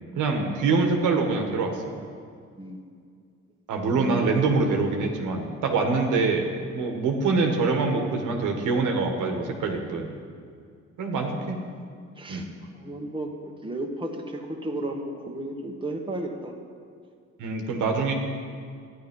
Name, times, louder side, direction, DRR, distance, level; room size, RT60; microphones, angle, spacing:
voice 1, 0.1-1.7 3.7-6.5 6.7-10.1 11.0-11.6 12.3-12.5 17.4-18.1, right 4 dB, 85° right, 2 dB, 1.6 m, -24 dB
voice 2, 2.6-2.9 3.9-4.3 11.1-11.8 12.2-12.5 12.7-16.6, right 1 dB, 15° right, 1 dB, 1.6 m, -34 dB
13.0 x 10.0 x 5.4 m, 2.2 s
cardioid pair, 90°, 30 cm